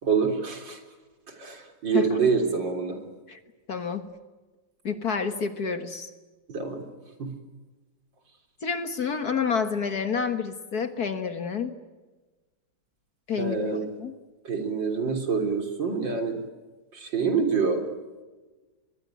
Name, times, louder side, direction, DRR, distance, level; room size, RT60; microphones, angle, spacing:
voice 1, 0.0-0.8 1.3-3.0 6.5-6.9 7.2-7.3 13.4-13.9 14.4-16.4 16.9-17.8, right 5 dB, 60° right, 5 dB, 4.2 m, -26 dB
voice 2, 3.7-4.1 4.8-6.1 8.6-11.8 13.3-13.6 14.0-14.1, left 6 dB, 50° left, 9 dB, 1.9 m, -29 dB
26.0 x 22.0 x 9.2 m, 1.2 s
omnidirectional pair, 2.3 m